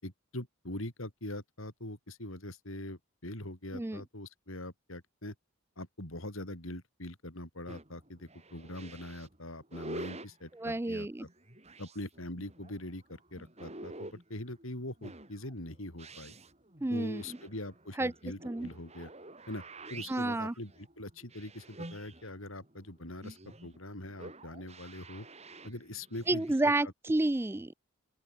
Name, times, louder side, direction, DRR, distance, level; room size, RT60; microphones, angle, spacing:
voice 1, 0.0-5.3 5.8-11.3 11.8-16.3 16.9-19.1 19.5-19.6 19.9-25.3 25.6-26.5 26.8-26.9, left 1 dB, 75° left, 5.9 m, -43 dB
sound 1, 7.7-26.6, right 2 dB, 30° right, 6.3 m, -49 dB
voice 2, 10.6-11.3 16.8-17.2 18.0-18.1 18.4-18.7 20.1-20.5 26.3-27.7, right 2 dB, 10° right, 0.4 m, -30 dB
open air
head